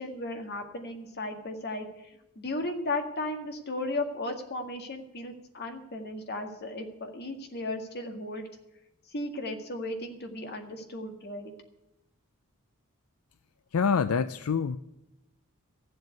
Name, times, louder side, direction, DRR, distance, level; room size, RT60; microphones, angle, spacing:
voice 1, 0.0-1.9 2.4-8.5 9.1-11.5, left 2 dB, 50° left, 4 dB, 1.9 m, -35 dB
voice 2, 13.7-14.8, left 6 dB, 75° left, 13 dB, 0.5 m, -26 dB
14.0 x 7.9 x 9.2 m, 0.87 s
head